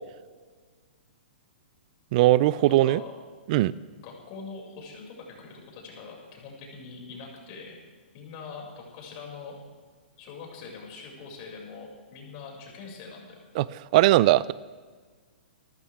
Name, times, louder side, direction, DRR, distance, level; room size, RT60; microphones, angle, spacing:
voice 1, 2.1-3.0 3.5-3.7 13.6-13.7 13.9-14.5, right 16 dB, 40° right, 20 dB, 0.4 m, -19 dB
voice 2, 2.7-3.1 4.0-7.8 8.1-9.6 10.2-13.4, left 5 dB, 40° left, -1 dB, 6.1 m, -43 dB
26.5 x 14.0 x 3.6 m, 1.5 s
hypercardioid pair, 145°, 6 cm